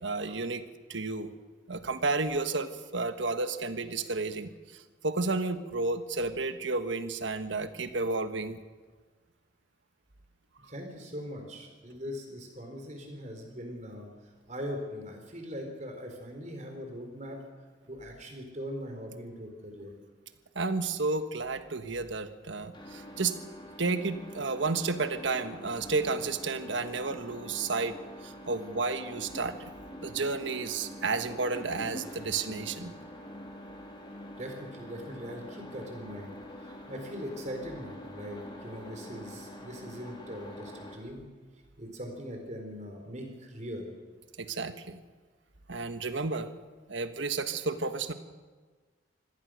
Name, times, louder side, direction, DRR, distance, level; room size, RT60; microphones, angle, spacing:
voice 1, 0.0-0.6 0.9-1.3 1.7-8.6 20.5-23.4 23.8-28.0 28.2-29.7 30.0-32.9 44.4-45.0 45.7-46.5 46.9-48.1, right 3 dB, 75° right, 9 dB, 1.3 m, -32 dB
voice 2, 10.7-14.1 14.5-17.4 17.9-19.9 34.4-36.3 36.6-41.3 41.8-43.9, equal, 35° right, 4 dB, 4.2 m, -41 dB
sound 1, 22.7-41.0, equal, 25° left, 3.0 m, -45 dB
24.5 x 17.5 x 6.4 m, 1.4 s
head